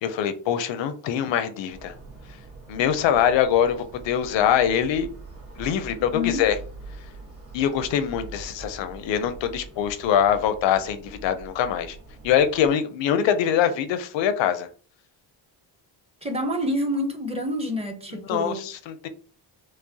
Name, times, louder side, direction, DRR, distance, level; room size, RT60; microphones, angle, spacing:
voice 1, 0.0-1.9 2.7-5.1 5.6-6.6 7.5-12.0 12.2-14.7 18.1-19.1, left 9 dB, 90° left, 0.6 m, -23 dB
sound 1, 1.7-12.7, right 3 dB, 30° right, 1.6 m, -43 dB
voice 2, 6.0-6.4 16.2-18.6, left 1 dB, 15° right, 0.7 m, -27 dB
4.7 x 2.1 x 2.8 m
cardioid pair, 90°, 43 cm